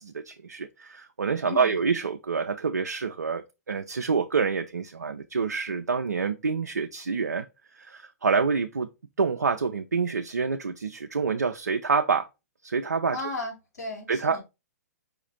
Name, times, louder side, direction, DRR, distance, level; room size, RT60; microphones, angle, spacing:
voice 1, 0.0-8.9 9.2-12.3 12.6-13.2 14.1-14.4, right 5 dB, 85° right, 0.4 m, -27 dB
voice 2, 1.5-1.8 13.1-14.4, left 2 dB, 75° left, 2.4 m, -35 dB
5.0 x 2.4 x 3.9 m
figure-of-eight pair, 120°, 9 cm